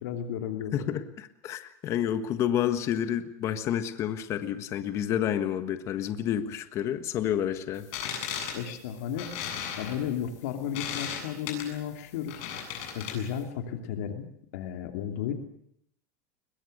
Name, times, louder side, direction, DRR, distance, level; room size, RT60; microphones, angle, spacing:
voice 1, 0.0-0.9 8.5-9.3 9.8-12.4 12.9-14.3 14.5-15.3, left 9 dB, 80° left, 6 dB, 2.7 m, -33 dB
voice 2, 0.7-7.9, left 10 dB, 35° left, 10 dB, 1.5 m, -29 dB
sound 1, 7.8-13.4, left 8 dB, 60° left, 7.8 m, -37 dB
22.0 x 21.5 x 6.6 m, 0.71 s
supercardioid pair, 160°, 8 cm